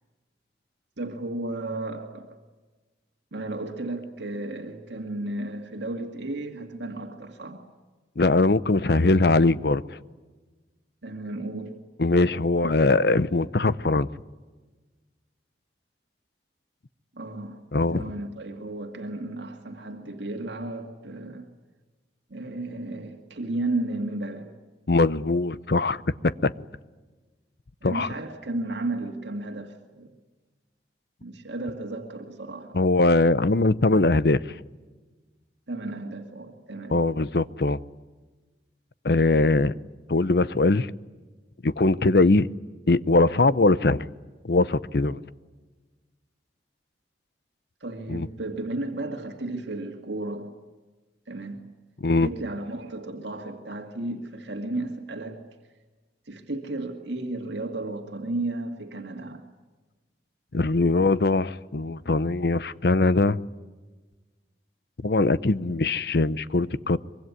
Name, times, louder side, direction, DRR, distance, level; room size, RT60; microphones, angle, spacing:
voice 1, 1.0-2.4 3.3-7.7 8.8-9.2 11.0-11.8 17.2-17.6 17.9-21.5 22.3-24.5 27.8-30.2 31.2-32.8 35.7-37.0 47.8-50.6 51.3-51.7 52.1-55.4 56.3-59.4, right 2 dB, 90° right, 2.1 m, -33 dB
voice 2, 8.2-9.8 12.0-14.1 17.7-18.1 24.9-26.5 27.8-28.1 32.7-34.4 36.9-37.8 39.0-39.7 40.1-40.9 41.6-42.5 42.9-44.1 44.4-45.2 48.1-48.3 52.0-52.3 60.5-63.4 65.0-67.0, left 2 dB, 60° left, 0.7 m, -21 dB
24.5 x 23.0 x 9.7 m
head